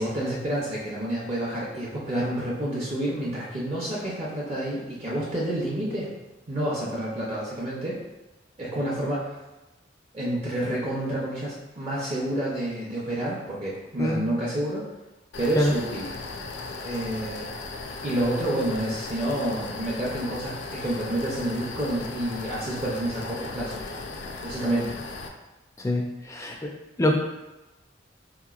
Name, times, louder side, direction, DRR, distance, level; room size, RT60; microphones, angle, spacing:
voice 1, 0.0-6.1 6.5-8.0 8.6-9.3 10.1-14.9 15.4-16.1 16.8-17.5 18.0-23.8 24.4-24.9, right 1 dB, 35° right, -6 dB, 0.6 m, -29 dB
sound 1, 15.3-25.3, left 3 dB, 75° left, 0.4 m, -37 dB
voice 2, 25.8-26.5 27.0-27.1, left 1 dB, 15° left, 1 dB, 0.4 m, -24 dB
4.2 x 2.9 x 2.3 m, 1.0 s
head